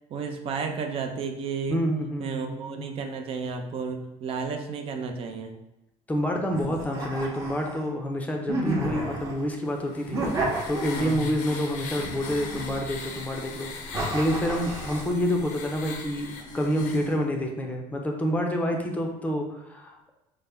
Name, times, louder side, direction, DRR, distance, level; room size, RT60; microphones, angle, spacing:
voice 1, 0.1-1.8 2.2-5.5 10.9-11.3, right 5 dB, 45° right, 5 dB, 0.5 m, -32 dB
voice 2, 1.7-2.9 6.1-10.2 10.7-20.0, equal, 10° left, 2 dB, 0.5 m, -28 dB
sound 1, 6.5-7.9 8.5-9.5 10.1-11.2 12.0-13.1 13.9-15.1, right 1 dB, 25° right, 0.8 m, -31 dB
sound 2, 9.6-17.2, left 4 dB, 80° left, 0.7 m, -39 dB
5.4 x 2.1 x 3.5 m, 0.94 s
cardioid pair, 140°, 13 cm